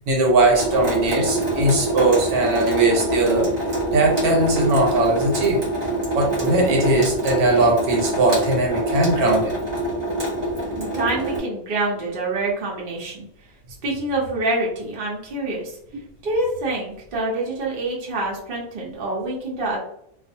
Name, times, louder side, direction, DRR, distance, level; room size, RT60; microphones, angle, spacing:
voice 1, 0.1-3.5 3.9-5.6 6.1-9.5, right 2 dB, 70° right, 0 dB, 1.2 m, -19 dB
Water tap faucet / Sink (filling or washing) / Drip, 0.6-11.4, right 1 dB, 30° right, 1.0 m, -25 dB
voice 2, 10.8-13.3 13.8-15.8 16.2-19.8, right 2 dB, 50° right, -3 dB, 0.7 m, -26 dB
2.5 x 2.4 x 2.6 m, 0.71 s
omnidirectional pair, 1.7 m